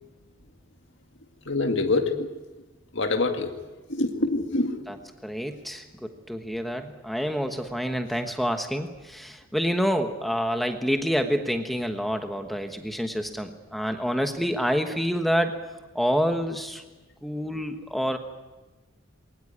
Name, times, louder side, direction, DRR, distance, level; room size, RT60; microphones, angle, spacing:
voice 1, 1.4-2.3 2.9-3.6 3.9-4.8, left 2 dB, 60° left, 4 dB, 2.1 m, -25 dB
voice 2, 5.2-15.6 15.9-16.8 17.2-18.2, equal, ahead, 5 dB, 1.2 m, -27 dB
22.0 x 18.5 x 9.7 m, 1.2 s
head